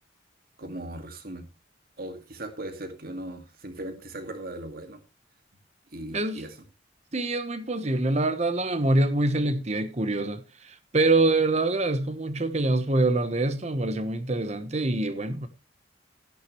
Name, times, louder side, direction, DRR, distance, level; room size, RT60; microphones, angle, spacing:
voice 1, 0.6-1.5 2.0-5.0 5.9-6.6, right 1 dB, 55° right, 2.2 m, -38 dB
voice 2, 7.1-15.5, right 2 dB, 40° right, 1.1 m, -25 dB
13.0 x 10.5 x 3.2 m
head